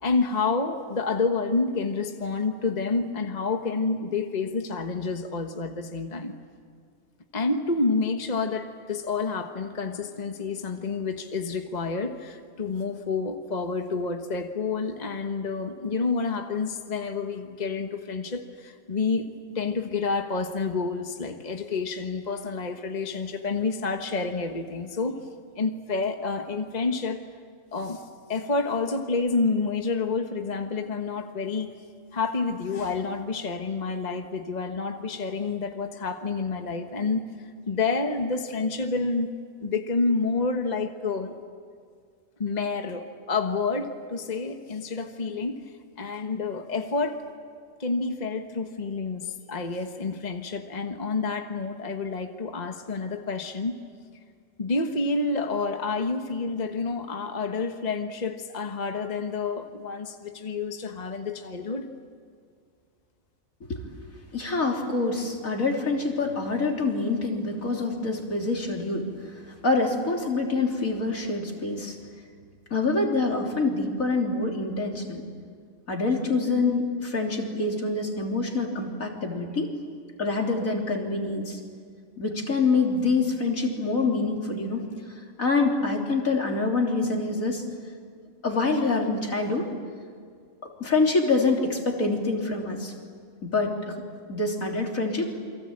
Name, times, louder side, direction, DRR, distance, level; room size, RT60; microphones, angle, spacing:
voice 1, 0.0-6.3 7.3-25.2 25.5-27.2 27.7-31.7 32.1-37.3 37.7-39.3 39.6-41.3 42.4-45.6 46.0-47.3 47.8-53.8 54.6-61.9, left 4 dB, 30° left, 5 dB, 1.4 m, -29 dB
voice 2, 64.3-69.1 69.6-72.0 72.7-75.2 75.9-79.7 80.2-81.6 82.2-84.8 85.4-87.6 88.4-89.7 90.6-92.9 93.4-94.0 94.3-95.4, left 3 dB, 70° left, 1 dB, 3.8 m, -26 dB
28.5 x 23.5 x 8.8 m, 2.1 s
omnidirectional pair, 1.5 m